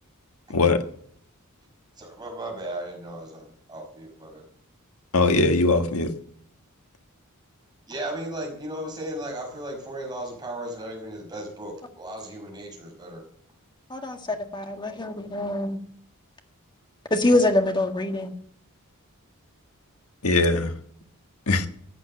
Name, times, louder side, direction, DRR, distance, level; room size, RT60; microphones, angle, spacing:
voice 1, 0.5-0.8 5.1-6.1 20.2-20.7 21.5-21.7, left 3 dB, 70° left, 1.5 m, -20 dB
voice 2, 2.0-4.5 7.9-13.2, right 1 dB, 20° right, 5.3 m, -36 dB
voice 3, 13.9-15.8 17.1-18.3, left 2 dB, 20° left, 1.7 m, -24 dB
14.5 x 8.7 x 7.7 m
head